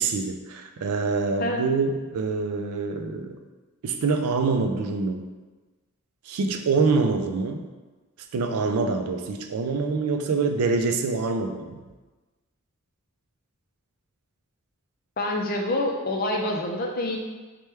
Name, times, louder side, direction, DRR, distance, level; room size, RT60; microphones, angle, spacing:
voice 1, 0.0-3.4 3.8-5.3 6.3-7.7 8.3-11.8, right 4 dB, 85° right, 4 dB, 0.4 m, -25 dB
voice 2, 15.2-17.2, left 1 dB, 40° left, 1 dB, 0.5 m, -26 dB
4.4 x 2.2 x 3.3 m, 1.2 s
head